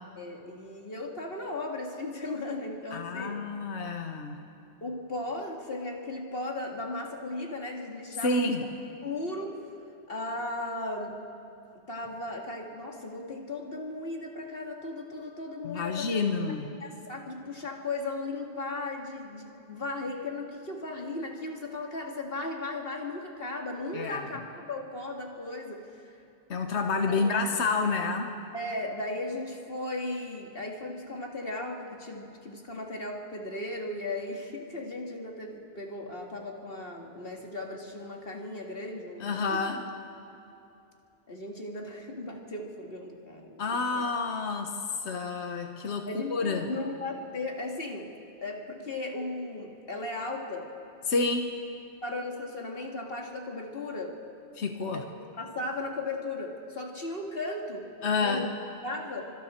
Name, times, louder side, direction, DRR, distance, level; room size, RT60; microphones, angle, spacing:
voice 1, 0.2-3.4 4.8-8.5 9.0-9.6 10.1-11.2 11.7-16.2 16.8-26.1 27.1-27.2 28.5-39.6 41.3-43.6 43.9-44.0 46.1-48.1 48.4-50.7 52.0-54.2 54.9-55.0 55.4-58.5 58.8-59.2, left 2 dB, 55° left, 0 dB, 2.3 m, -36 dB
voice 2, 2.9-4.4 8.2-8.6 15.6-16.7 23.9-24.2 26.5-28.3 39.2-39.8 43.6-46.7 51.1-51.5 54.6-55.1 58.0-58.5, left 4 dB, 75° left, 4 dB, 1.4 m, -29 dB
28.5 x 25.5 x 4.4 m, 2.7 s
omnidirectional pair, 1.1 m